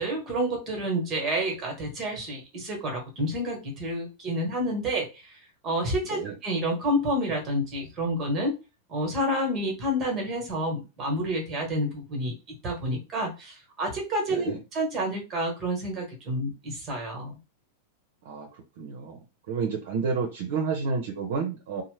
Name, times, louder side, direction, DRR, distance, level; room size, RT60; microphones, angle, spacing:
voice 1, 0.0-5.2 5.6-8.5 8.9-12.3 12.6-17.4, equal, 30° right, 1 dB, 1.3 m, -29 dB
voice 2, 18.2-19.2 19.5-21.8, right 5 dB, 70° right, 1 dB, 0.7 m, -30 dB
2.8 x 2.1 x 3.2 m, 0.27 s
hypercardioid pair, 120°, 0 cm